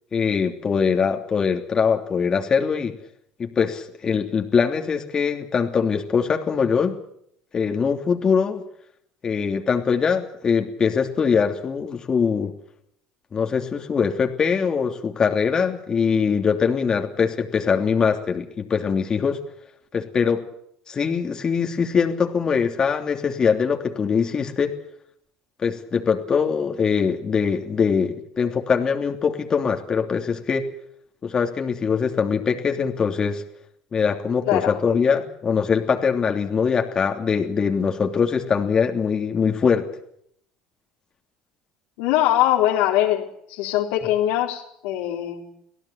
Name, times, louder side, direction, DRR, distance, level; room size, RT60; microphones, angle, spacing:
voice 1, 0.1-2.9 3.4-6.9 7.5-8.6 9.2-12.5 13.3-19.4 19.9-20.4 20.9-24.7 25.6-30.6 31.2-33.4 33.9-39.9, left 6 dB, 35° left, 4 dB, 3.1 m, -22 dB
voice 2, 34.5-34.8 42.0-45.4, left 13 dB, 80° left, -1 dB, 4.1 m, -22 dB
25.0 x 17.0 x 8.5 m, 0.70 s
hypercardioid pair, 80°, 2 cm